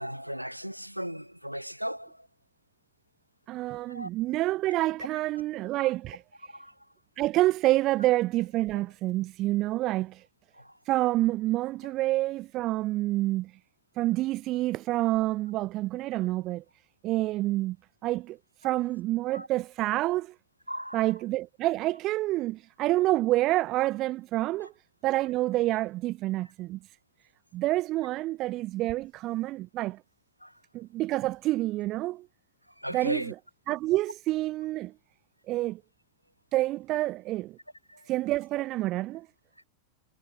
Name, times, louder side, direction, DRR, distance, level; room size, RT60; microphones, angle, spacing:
voice 1, 0.0-2.3 3.9-4.1 5.6-5.9 6.5-6.7 10.5-10.8 19.3-19.5 20.7-21.0 24.6-24.7 30.4-30.5 32.8-33.3 37.9-38.1, equal, 90° right, 1.0 m, -37 dB
voice 2, 3.5-6.2 7.2-10.2 10.9-13.5 14.0-16.6 17.0-17.8 18.0-18.4 18.6-20.3 20.9-24.7 25.0-26.8 27.5-30.0 30.7-32.3 32.9-33.2 33.7-34.9 35.5-35.8 36.5-37.6 38.1-39.3, right 17 dB, 35° right, 0.3 m, -28 dB
figure-of-eight pair, 90°, 0 cm